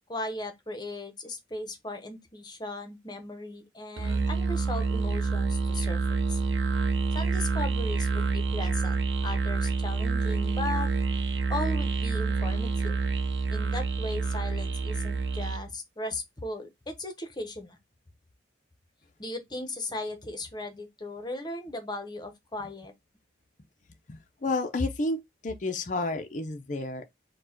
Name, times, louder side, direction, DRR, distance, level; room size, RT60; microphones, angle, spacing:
voice 1, 0.1-6.4 7.1-10.9 11.5-12.9 13.5-17.8 19.2-22.9, left 2 dB, 20° left, 0.9 m, -37 dB
Musical instrument, 4.0-15.7, right 4 dB, 70° right, 0.7 m, -28 dB
voice 2, 24.1-25.2 25.4-27.0, left 2 dB, 40° left, 0.6 m, -30 dB
4.4 x 2.3 x 4.4 m
head